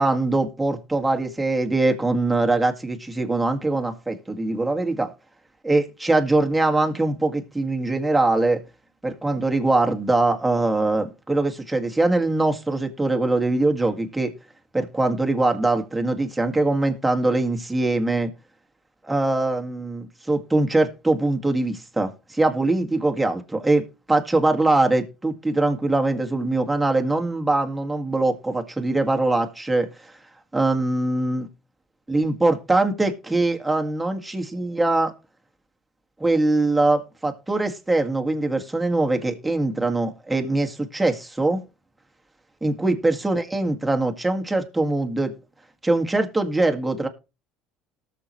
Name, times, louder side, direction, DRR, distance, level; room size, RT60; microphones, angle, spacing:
voice 1, 0.0-5.1 5.6-8.6 9.0-14.3 14.7-18.3 19.0-30.1 30.5-31.5 32.1-35.1 36.2-41.6 42.6-45.3 45.8-47.1, right 2 dB, 10° right, 2.0 m, -22 dB
18.5 x 6.8 x 3.2 m
hypercardioid pair, 80°, 0 cm